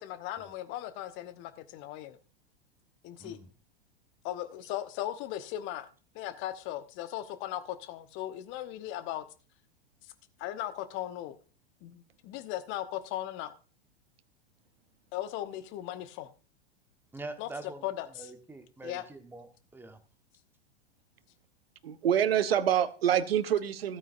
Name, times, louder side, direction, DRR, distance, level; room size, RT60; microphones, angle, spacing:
voice 1, 0.0-2.2 3.0-3.4 4.2-5.9 6.1-9.2 10.4-11.4 11.8-13.6 15.1-16.3 17.4-17.5 17.8-18.3 18.8-19.0, left 13 dB, 35° left, 1.1 m, -37 dB
voice 2, 3.1-3.5 17.1-17.9 18.1-20.0, right 2 dB, 5° right, 1.3 m, -44 dB
voice 3, 21.8-24.0, right 9 dB, 65° right, 1.0 m, -26 dB
16.0 x 9.2 x 2.6 m
figure-of-eight pair, 95°, 32 cm